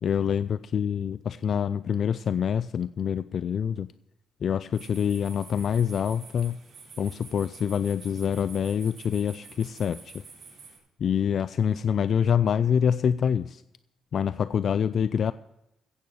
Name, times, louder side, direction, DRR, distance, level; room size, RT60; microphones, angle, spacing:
voice 1, 0.0-3.9 4.4-6.6 7.0-10.2 11.0-13.6 14.1-15.3, left 8 dB, 55° left, 15 dB, 0.4 m, -26 dB
sound 1, 4.7-10.8, right 5 dB, 45° right, 5.0 m, -48 dB
15.5 x 8.4 x 6.3 m, 0.89 s
cardioid pair, 90°, 0 cm